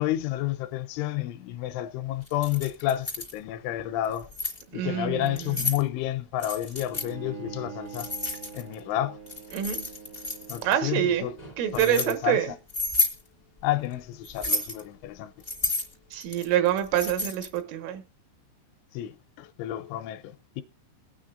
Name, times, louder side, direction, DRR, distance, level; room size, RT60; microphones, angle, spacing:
voice 1, 0.0-4.3 4.7-8.1 8.5-9.2 10.5-11.3 11.7-12.4 13.6-15.3 18.9-20.6, left 13 dB, 80° left, 3.1 m, -30 dB
Keys jangling, 2.3-3.3 4.0-4.6 5.3-5.8 6.4-7.1 7.9-8.8 9.3-10.7 11.4-12.1 12.7-13.2 14.2-14.8 15.4-17.6, left 2 dB, 45° left, 0.5 m, -31 dB
voice 2, 4.7-5.8 9.5-9.9 10.6-11.3 11.6-12.5 16.1-18.0, right 11 dB, 85° right, 4.0 m, -26 dB
Bowed string instrument, 6.7-12.0, right 6 dB, 70° right, 0.8 m, -44 dB
22.5 x 9.2 x 2.5 m
omnidirectional pair, 5.6 m